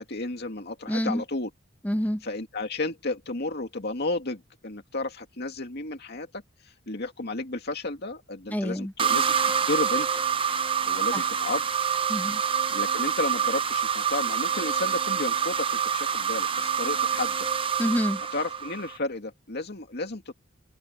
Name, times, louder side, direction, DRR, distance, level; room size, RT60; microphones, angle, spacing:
voice 1, 0.0-1.5 2.2-6.4 6.9-9.3 9.6-10.2 10.9-11.7 12.7-17.5 18.3-20.3, left 2 dB, 55° left, 2.4 m, -32 dB
voice 2, 0.9-1.2 1.8-2.2 8.5-8.9 11.1-11.3 12.1-12.4 17.8-18.2, equal, 10° left, 1.1 m, -27 dB
sound 1, 9.0-19.0, right 7 dB, 25° right, 0.7 m, -26 dB
head